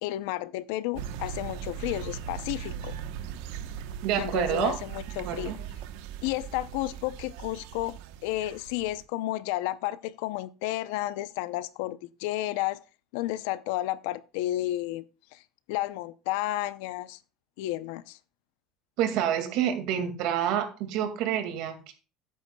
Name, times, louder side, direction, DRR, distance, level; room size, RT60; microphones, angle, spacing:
voice 1, 0.0-3.0 4.2-5.5 6.2-12.8 13.1-15.0 15.3-15.4 15.7-17.2 17.6-18.2, left 15 dB, 85° left, 0.6 m, -32 dB
sound 1, 0.9-9.0, right 9 dB, 85° right, 1.0 m, -39 dB
voice 2, 4.0-4.8 5.2-5.6 19.0-21.9, right 10 dB, 60° right, 2.1 m, -28 dB
13.0 x 9.4 x 2.3 m
cardioid pair, 170°, 0 cm